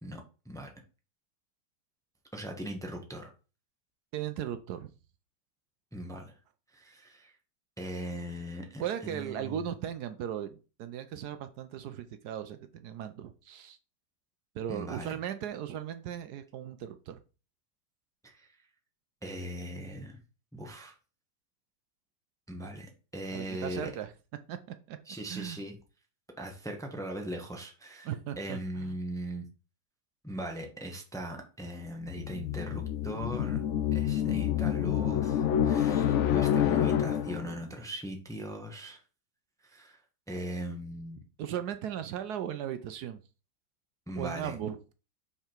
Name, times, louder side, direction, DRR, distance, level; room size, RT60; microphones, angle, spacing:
voice 1, 0.0-0.7 2.3-3.3 5.9-6.3 6.7-7.4 7.8-9.6 14.7-15.2 18.2-18.6 19.2-20.2 20.5-20.9 22.5-23.9 25.1-25.8 26.4-28.1 28.4-29.5 30.2-33.6 33.9-39.0 39.6-40.0 40.3-41.2 44.1-44.6, right 1 dB, ahead, 3 dB, 0.9 m, -39 dB
voice 2, 4.1-4.9 8.8-13.8 14.5-17.2 23.3-24.1 24.5-24.6 24.9-25.0 25.3-25.6 28.0-29.0 41.4-43.2 44.2-44.8, right 10 dB, 75° right, 10 dB, 1.1 m, -37 dB
sound 1, 32.1-37.6, left 10 dB, 70° left, 0.7 m, -28 dB
5.7 x 4.9 x 4.5 m, 0.34 s
omnidirectional pair, 1.8 m